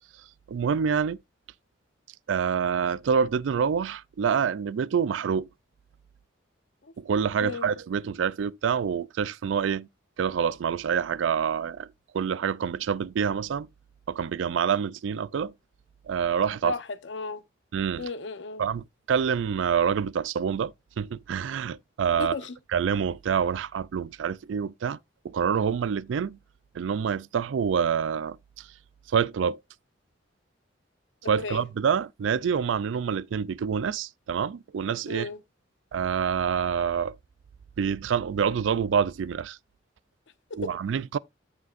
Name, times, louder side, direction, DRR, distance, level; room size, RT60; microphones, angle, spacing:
voice 1, 0.5-1.2 2.3-5.5 7.0-9.9 10.2-11.9 12.1-13.7 14.1-15.5 16.1-16.7 17.7-18.1 18.6-22.3 22.7-25.0 25.2-26.4 26.7-28.7 29.1-29.6 31.3-35.3 35.9-37.2 37.8-39.6 40.6-41.2, right 7 dB, 75° right, 0.3 m, -27 dB
voice 2, 7.4-7.7 16.6-17.4 18.0-18.6 22.2-22.6 31.4-31.6 35.1-35.4, left 3 dB, 65° left, 0.8 m, -34 dB
13.5 x 5.1 x 2.4 m
head